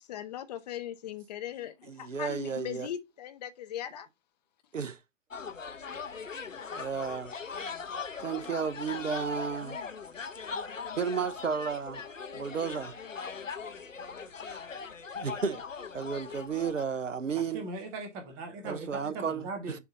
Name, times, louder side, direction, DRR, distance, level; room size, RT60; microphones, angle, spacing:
voice 1, 0.0-4.1, left 11 dB, 35° left, 0.7 m, -39 dB
voice 2, 1.9-2.9 4.7-5.0 6.8-7.3 8.2-9.8 11.0-12.0 12.3-13.0 14.5-14.6 15.1-15.6 15.9-17.7 18.6-19.8, right 6 dB, 80° right, 0.9 m, -33 dB
sound 1, 5.3-16.8, left 5 dB, 85° left, 0.9 m, -40 dB
voice 3, 17.3-19.8, right 3 dB, 5° right, 0.4 m, -39 dB
7.0 x 2.7 x 5.5 m
figure-of-eight pair, 120°, 38 cm